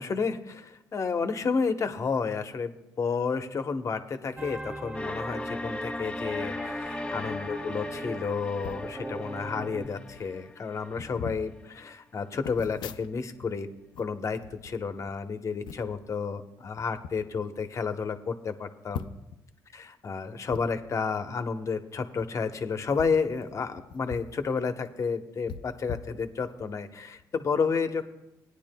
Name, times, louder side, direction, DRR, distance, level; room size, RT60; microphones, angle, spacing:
voice 1, 0.0-13.7 14.0-19.1 19.7-28.0, left 5 dB, 40° left, 8 dB, 1.0 m, -31 dB
sound 1, 4.4-9.9, right 1 dB, 20° right, 1.2 m, -39 dB
sound 2, 4.9-11.9, left 2 dB, 15° left, 0.4 m, -38 dB
sound 3, 8.6-8.9 9.7-9.8 10.0-10.3 10.9-11.5 12.4-13.5 13.8-15.2 15.6-16.0 16.8-17.1 17.7-17.8 18.0-18.1 18.9-19.4 20.5-20.6 22.1-22.3 22.8-24.4 24.7-24.8 25.5-26.7 27.2-27.3, left 7 dB, 85° left, 0.5 m, -42 dB
19.5 x 9.8 x 2.2 m, 0.92 s
cardioid pair, 90°, 8 cm